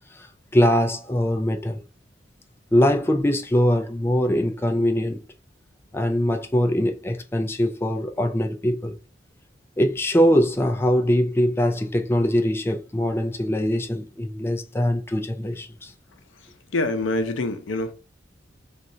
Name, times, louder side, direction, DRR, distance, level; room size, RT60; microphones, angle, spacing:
voice 1, 0.5-1.8 2.7-5.2 5.9-9.0 9.8-15.9, equal, 10° left, 0.4 m, -22 dB
voice 2, 16.7-17.9, left 2 dB, 85° left, 0.6 m, -25 dB
2.7 x 2.4 x 4.2 m
head